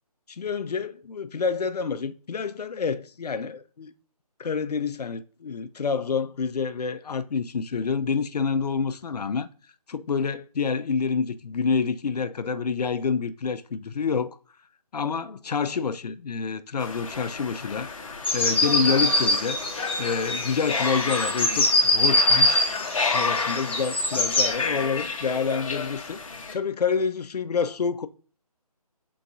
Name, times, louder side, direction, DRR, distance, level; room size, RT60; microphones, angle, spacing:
voice 1, 0.3-3.9 4.4-9.5 9.9-14.4 14.9-17.9 18.3-19.6 20.0-22.6 23.1-26.2 26.5-28.1, left 5 dB, 85° left, 0.4 m, -28 dB
sound 1, 16.8-26.5, left 4 dB, 55° left, 0.7 m, -31 dB
sound 2, 18.2-24.5, left 1 dB, 20° left, 0.4 m, -23 dB
4.5 x 3.8 x 2.6 m
figure-of-eight pair, 160°, 20 cm